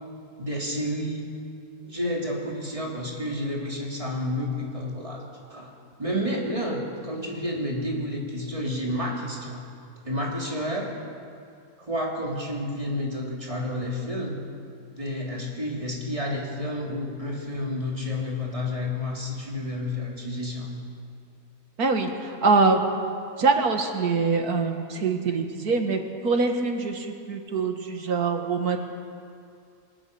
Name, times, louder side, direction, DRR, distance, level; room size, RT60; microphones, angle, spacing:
voice 1, 0.4-1.3 1.8-5.2 5.5-5.7 6.0-9.6 10.0-10.9 11.8-14.4 14.9-20.7, left 1 dB, 20° right, -3 dB, 3.5 m, -30 dB
voice 2, 21.8-22.8 23.4-28.8, right 4 dB, 85° right, 5 dB, 2.2 m, -24 dB
24.0 x 18.0 x 7.0 m, 2.4 s
omnidirectional pair, 1.6 m